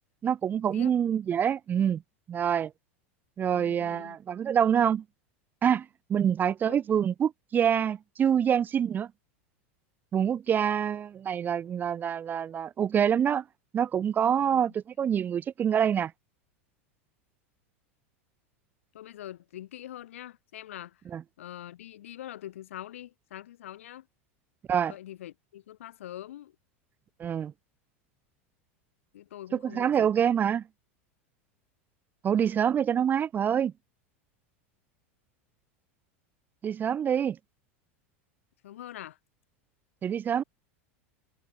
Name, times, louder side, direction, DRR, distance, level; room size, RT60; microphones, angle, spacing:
voice 1, 0.2-2.0 2.3-2.7 3.4-5.0 5.6-9.1 10.1-13.4 13.7-14.7 15.0-16.1 21.1-21.2 24.7-24.9 27.2-27.5 29.6-30.6 32.2-33.7 36.6-37.4 40.0-40.4, right 8 dB, 25° right, 0.3 m, -26 dB
voice 2, 3.5-4.2 6.6-6.8 14.4-14.6 18.9-21.0 21.4-24.1 24.9-26.5 29.1-30.1 38.6-39.2, left 12 dB, 80° left, 1.4 m, -44 dB
hypercardioid pair, 100°, 7 cm